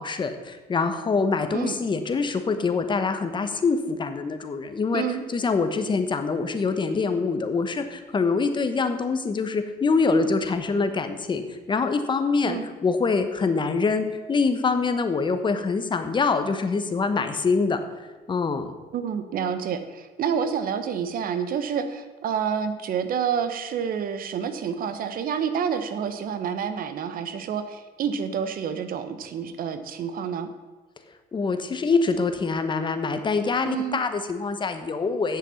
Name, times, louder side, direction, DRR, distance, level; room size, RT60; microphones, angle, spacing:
voice 1, 0.0-5.0 5.3-17.8 18.3-18.7 31.3-35.4, left 4 dB, 30° left, 8 dB, 1.1 m, -25 dB
voice 2, 4.9-5.2 12.5-12.7 18.9-30.5 33.6-34.0, right 7 dB, 60° right, 10 dB, 1.1 m, -28 dB
8.2 x 7.1 x 7.2 m, 1.3 s
cardioid pair, 110°, 17 cm